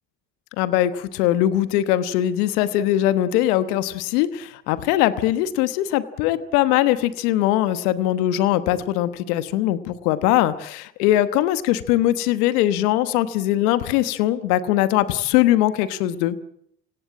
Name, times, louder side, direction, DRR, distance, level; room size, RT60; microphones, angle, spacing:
voice 1, 0.6-16.4, left 13 dB, 85° left, 13 dB, 1.3 m, -21 dB
27.0 x 17.0 x 8.7 m, 0.72 s
hypercardioid pair, 55°, 44 cm